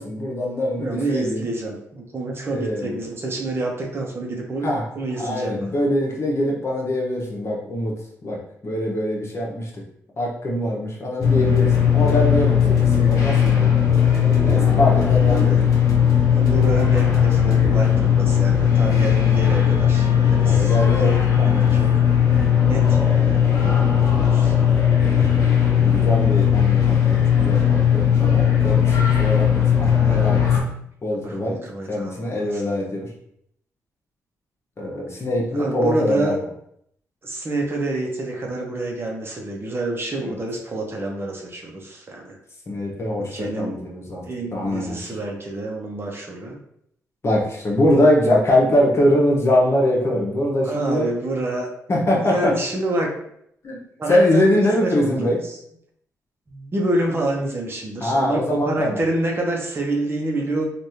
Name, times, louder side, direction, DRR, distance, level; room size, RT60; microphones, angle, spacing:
voice 1, 0.0-1.4 2.5-3.0 4.6-4.8 5.2-7.9 8.2-9.7 10.2-13.7 14.4-15.5 20.4-21.1 21.5-21.7 25.8-30.4 31.0-31.6 31.9-33.1 34.8-36.4 40.2-40.3 42.7-44.2 44.5-45.1 47.2-51.1 51.9-52.5 53.6-53.8 54.1-55.4 58.0-59.0, left 1 dB, 45° left, -2 dB, 1.0 m, -22 dB
voice 2, 0.8-4.7 4.9-5.7 15.3-15.6 16.3-21.9 22.6-24.5 31.1-32.6 35.6-36.4 37.2-42.4 43.2-43.8 44.2-46.6 50.7-51.7 52.2-53.1 54.0-55.6 56.5-60.6, right 2 dB, 40° right, 0 dB, 0.9 m, -28 dB
sound 1, 11.2-30.6, left 8 dB, 70° left, 0.8 m, -17 dB
3.4 x 2.5 x 2.8 m, 0.71 s
cardioid pair, 60°, 6 cm